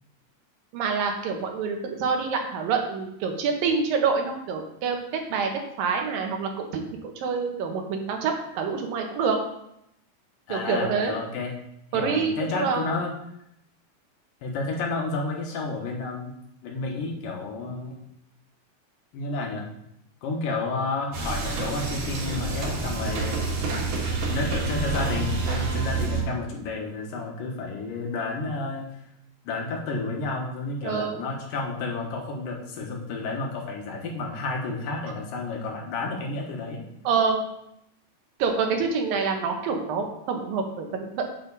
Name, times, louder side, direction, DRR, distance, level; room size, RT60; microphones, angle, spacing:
voice 1, 0.7-5.5 5.8-9.4 10.5-11.1 11.9-12.9 23.1-23.4 30.8-31.2 37.0-37.4 38.4-41.2, right 5 dB, 85° right, 3 dB, 2.9 m, -27 dB
voice 2, 10.5-11.5 11.9-13.1 14.4-16.3 16.6-18.0 19.1-19.6 20.2-23.4 24.3-28.9 29.4-36.9, left 3 dB, 80° left, 1 dB, 2.9 m, -31 dB
sound 1, 21.1-26.2, right 3 dB, 70° right, 3.1 m, -28 dB
8.1 x 6.9 x 4.0 m, 0.78 s
omnidirectional pair, 3.9 m